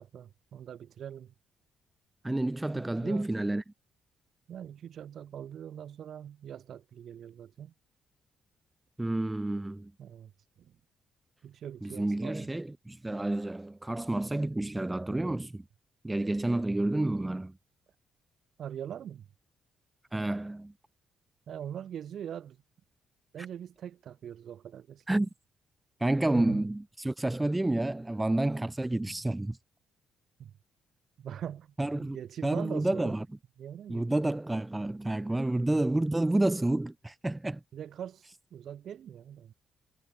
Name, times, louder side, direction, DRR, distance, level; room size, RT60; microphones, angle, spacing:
voice 1, 0.0-1.3 2.7-3.3 4.5-7.7 10.0-10.3 10.6-10.8 11.4-12.5 18.6-19.3 21.5-22.6 23.3-25.3 26.4-26.7 30.4-30.6 31.2-33.2 33.6-34.3 37.7-39.5, right 9 dB, 65° right, 5.7 m, -42 dB
voice 2, 2.2-3.6 9.0-9.9 11.8-15.6 16.0-17.5 20.1-20.7 25.1-25.3 26.0-29.6 31.8-32.2 32.4-33.2 33.9-37.6, right 2 dB, 10° right, 1.2 m, -29 dB
cardioid pair, 90°, 0 cm